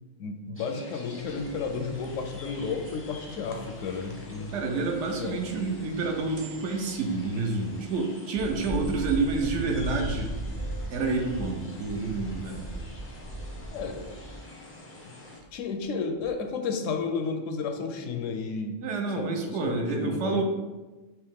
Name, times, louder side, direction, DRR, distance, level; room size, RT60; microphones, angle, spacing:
voice 1, 0.2-4.6 5.2-5.4 13.7-14.1 15.5-18.8 19.1-20.4, left 4 dB, 80° left, 6 dB, 1.0 m, -32 dB
sound 1, 0.6-15.4, left 1 dB, 15° left, 0.5 m, -47 dB
sound 2, 1.2-7.9 8.3-14.4 15.4-15.8 16.2-16.3, right 1 dB, 55° right, 0.5 m, -39 dB
voice 2, 4.5-10.3 10.9-12.8 18.8-20.4, right 3 dB, 70° right, 2 dB, 0.9 m, -29 dB
4.7 x 3.0 x 3.6 m, 1.2 s
omnidirectional pair, 1.3 m